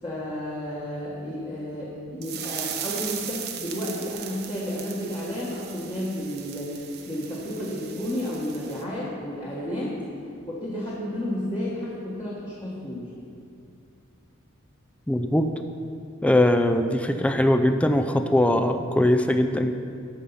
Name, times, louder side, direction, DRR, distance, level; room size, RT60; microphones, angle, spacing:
voice 1, 0.0-10.0 10.4-13.1, equal, 20° left, -7 dB, 1.4 m, -32 dB
sound 1, 2.2-8.8, right 9 dB, 50° right, 0.8 m, -37 dB
voice 2, 15.1-15.5 16.2-19.7, left 1 dB, 5° left, 7 dB, 0.4 m, -21 dB
14.0 x 5.5 x 5.5 m, 2.4 s
head